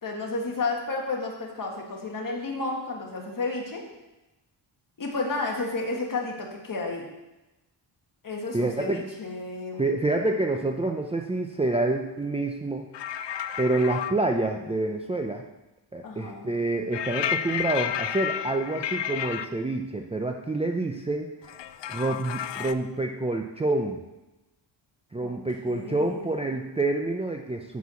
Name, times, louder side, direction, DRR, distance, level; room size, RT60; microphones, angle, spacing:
voice 1, 0.0-3.8 5.0-7.1 8.2-9.9 16.0-16.5 25.2-25.3 25.7-26.4, left 3 dB, 45° left, 0 dB, 1.8 m, -32 dB
voice 2, 8.5-9.1 9.8-12.9 13.6-15.4 15.9-21.5 21.9-24.0 25.1-27.8, right 2 dB, 15° right, 2 dB, 0.5 m, -27 dB
sound 1, 12.9-14.2 16.9-19.5 21.4-22.7, left 10 dB, 75° left, 0.5 m, -31 dB
8.2 x 4.7 x 7.0 m, 1.0 s
wide cardioid pair, 135°, 43 cm